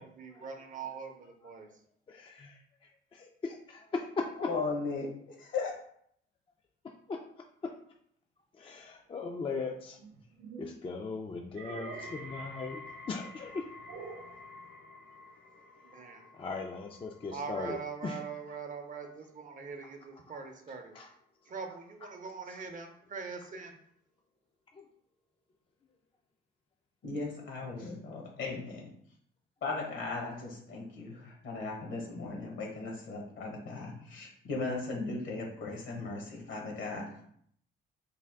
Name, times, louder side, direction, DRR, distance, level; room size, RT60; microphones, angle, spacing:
voice 1, 0.2-1.1 1.4-1.7 15.8-16.2 17.3-20.9 21.5-23.8, right 5 dB, 40° right, 5 dB, 0.6 m, -42 dB
voice 2, 2.1-4.5 6.8-7.2 8.5-10.0 10.6-12.8 13.1-13.7 16.3-18.5 19.8-20.5 20.9-21.1 21.4-21.5 22.4-22.7 24.7-24.9, left 4 dB, 25° left, 2 dB, 0.4 m, -39 dB
voice 3, 4.4-5.7 27.0-28.9 29.6-37.1, left 3 dB, 75° left, -1 dB, 1.3 m, -37 dB
sound 1, 10.0-10.8 11.5-12.4 13.9-14.4, right 5 dB, 85° right, 0.5 m, -45 dB
sound 2, 11.8-22.9 23.2-23.8 24.5-24.6, left 2 dB, 55° left, 0.9 m, -52 dB
3.4 x 2.4 x 3.5 m, 0.67 s
cardioid pair, 90°, 20 cm